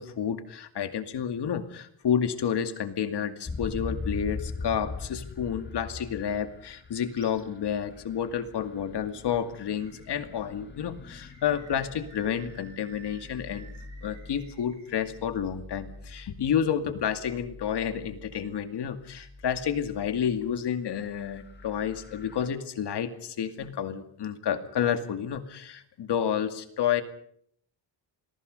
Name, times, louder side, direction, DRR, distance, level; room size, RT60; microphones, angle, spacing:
voice 1, 0.0-13.7 14.0-27.0, left 8 dB, 65° left, 8 dB, 2.4 m, -30 dB
sound 1, 3.5-20.5 20.9-22.5, left 3 dB, 25° left, 2.1 m, -42 dB
Animal, 7.1-7.4 7.9-8.0 9.6-10.4 11.0-15.0, right 4 dB, 85° right, 7.7 m, -55 dB
29.0 x 22.0 x 5.4 m, 0.66 s
cardioid pair, 135°, 44 cm